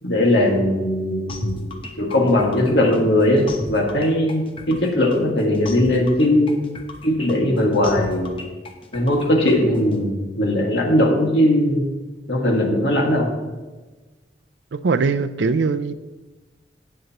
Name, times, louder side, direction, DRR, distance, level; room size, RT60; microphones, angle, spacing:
voice 1, 0.0-6.6 7.0-8.4 8.9-11.8 12.3-13.3, left 1 dB, 75° left, 0 dB, 1.8 m, -19 dB
sound 1, 1.3-10.0, left 1 dB, 30° left, 0.9 m, -33 dB
voice 2, 14.7-15.9, right 4 dB, 90° right, 11 dB, 0.5 m, -21 dB
17.0 x 6.5 x 3.0 m, 1.2 s
head